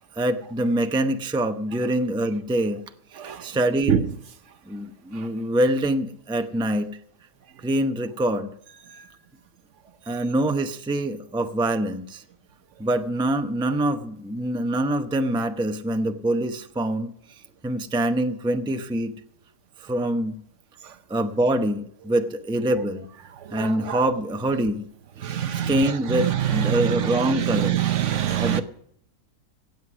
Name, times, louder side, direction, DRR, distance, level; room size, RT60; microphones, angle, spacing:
voice 1, 0.1-2.8 3.4-4.0 4.7-6.9 7.6-8.5 10.1-12.2 12.8-17.1 17.6-19.1 19.8-20.4 21.1-23.1 23.5-24.8 25.2-27.8 28.4-28.6, right 1 dB, 5° right, 0.5 m, -25 dB
voice 2, 23.5-24.0 25.2-25.8 26.1-28.6, right 10 dB, 65° right, 1.0 m, -24 dB
17.5 x 8.1 x 6.0 m
omnidirectional pair, 1.5 m